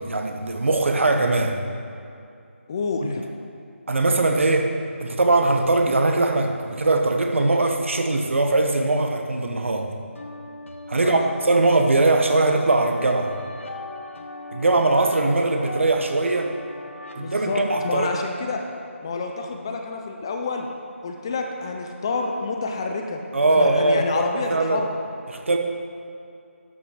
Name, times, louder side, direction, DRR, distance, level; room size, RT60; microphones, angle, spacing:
voice 1, 0.0-1.6 3.9-4.7 5.0-9.9 10.9-13.3 14.5-16.5 17.1-18.1 23.3-24.2 24.5-24.8 25.3-25.6, right 2 dB, 65° right, 4 dB, 1.2 m, -21 dB
voice 2, 2.7-3.2 11.0-11.3 17.2-18.6 19.0-20.7 21.0-23.2 23.5-25.0, left 3 dB, 20° left, 3 dB, 0.5 m, -28 dB
sound 1, 10.1-18.1, left 2 dB, 65° left, 1.1 m, -39 dB
12.5 x 5.7 x 6.2 m, 2.5 s
figure-of-eight pair, 165°, 7 cm